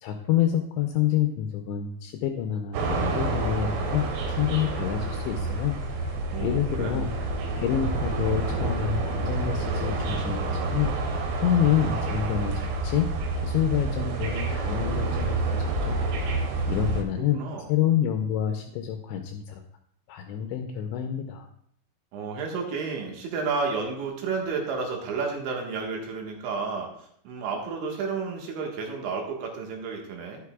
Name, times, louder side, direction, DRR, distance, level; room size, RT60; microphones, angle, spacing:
voice 1, 0.0-5.8 6.0-7.1 7.6-10.5 10.7-10.9 11.4-13.1 13.4-16.0 16.3-19.6 20.1-21.5, left 10 dB, 80° left, 5 dB, 2.7 m, -28 dB
sound 1, 2.7-17.0, right 2 dB, 85° right, 3.9 m, -28 dB
voice 2, 6.3-7.0 16.7-17.0 17.4-17.6 22.1-26.9 27.3-30.4, right 4 dB, 70° right, 1 dB, 3.8 m, -31 dB
11.5 x 11.0 x 2.4 m, 0.66 s
omnidirectional pair, 5.7 m